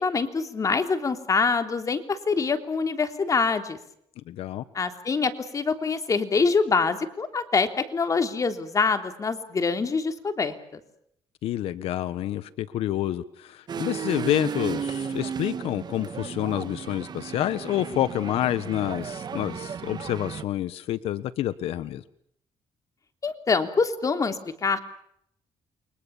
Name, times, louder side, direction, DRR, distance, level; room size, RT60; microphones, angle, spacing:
voice 1, 0.0-3.8 4.7-10.8 23.2-24.8, left 4 dB, 35° left, 7 dB, 3.4 m, -25 dB
voice 2, 4.3-4.6 11.4-22.0, left 12 dB, 80° left, 13 dB, 1.3 m, -28 dB
sound 1, 13.7-20.4, right 7 dB, 45° right, 1.6 m, -34 dB
29.0 x 24.0 x 7.3 m, 0.72 s
cardioid pair, 100°, 10 cm